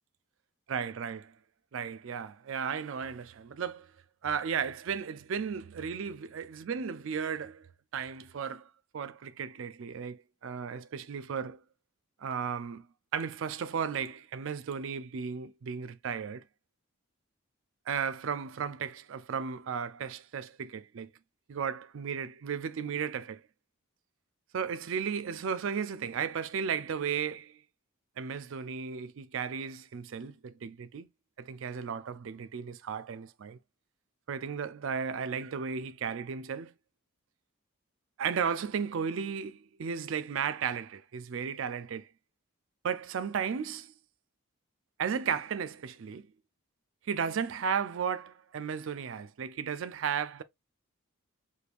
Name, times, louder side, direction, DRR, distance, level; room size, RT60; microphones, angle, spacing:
voice 1, 0.7-1.3 1.7-3.9 4.2-7.7 7.9-8.7 8.9-11.6 12.2-12.9 13.1-16.4 17.9-21.1 21.5-23.4 24.5-27.6 28.2-31.1 31.4-33.6 34.3-36.7 38.2-42.1 42.8-43.9 45.0-46.3 47.0-50.4, right 7 dB, 65° right, 0.4 m, -34 dB
5.0 x 3.2 x 2.4 m
head